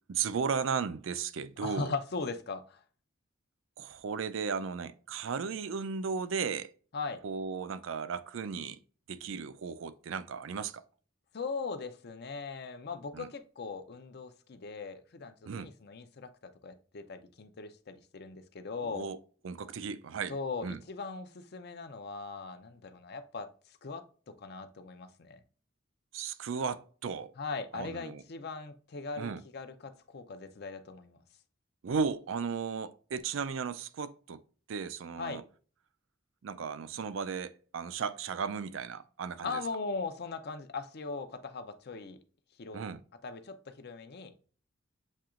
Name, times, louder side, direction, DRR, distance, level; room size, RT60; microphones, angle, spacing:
voice 1, 0.1-1.9 3.8-6.7 7.2-8.8 9.1-10.8 13.1-13.3 15.5-15.7 18.8-19.2 19.4-20.3 20.6-20.8 26.1-27.3 27.7-28.2 29.2-29.4 31.8-34.4 34.7-35.4 36.4-39.6 42.7-43.0, right 5 dB, 75° right, 0.4 m, -35 dB
voice 2, 1.6-2.8 6.9-7.2 11.3-19.1 20.3-25.4 27.4-31.2 35.2-35.4 39.4-42.2 42.6-42.8 43.2-44.3, left 4 dB, 55° left, 0.5 m, -39 dB
7.3 x 2.8 x 2.4 m
head